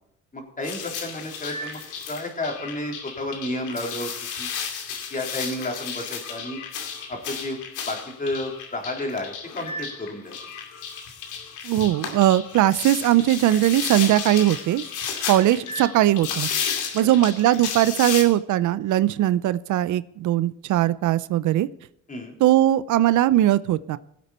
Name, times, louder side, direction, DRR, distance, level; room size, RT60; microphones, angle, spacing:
voice 1, 0.3-1.8 2.1-4.1 4.4-4.5 5.1-6.6 7.1-7.6 7.9-10.4 22.1-22.3, left 1 dB, 25° left, 1 dB, 3.8 m, -31 dB
sound 1, 0.6-18.2, left 6 dB, 90° left, 2.5 m, -33 dB
voice 2, 11.6-14.8 15.3-16.5 16.9-21.7 22.4-24.0, right 13 dB, 75° right, 16 dB, 0.6 m, -20 dB
17.5 x 8.3 x 4.3 m, 0.77 s
cardioid pair, 90°, 30 cm